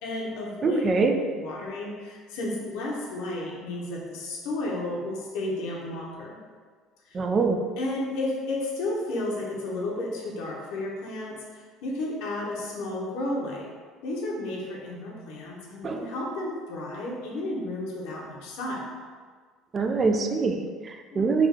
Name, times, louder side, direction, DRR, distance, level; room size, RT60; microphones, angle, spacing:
voice 1, 0.0-6.4 7.1-7.2 7.8-13.7 14.0-18.9 21.1-21.3, left 2 dB, 75° left, -2 dB, 0.8 m, -32 dB
voice 2, 0.6-1.1 7.1-7.6 15.8-16.1 19.7-21.5, right 4 dB, 35° right, 5 dB, 0.3 m, -24 dB
3.5 x 2.3 x 3.5 m, 1.6 s
supercardioid pair, 100°, 0 cm